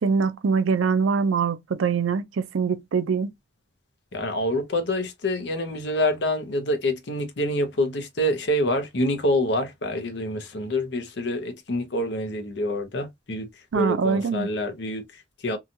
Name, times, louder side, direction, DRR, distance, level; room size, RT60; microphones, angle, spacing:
voice 1, 0.0-3.3 13.7-14.5, right 5 dB, 85° right, 0.4 m, -23 dB
voice 2, 4.1-13.5 13.7-15.6, left 1 dB, 60° left, 0.7 m, -26 dB
2.8 x 2.3 x 2.6 m
head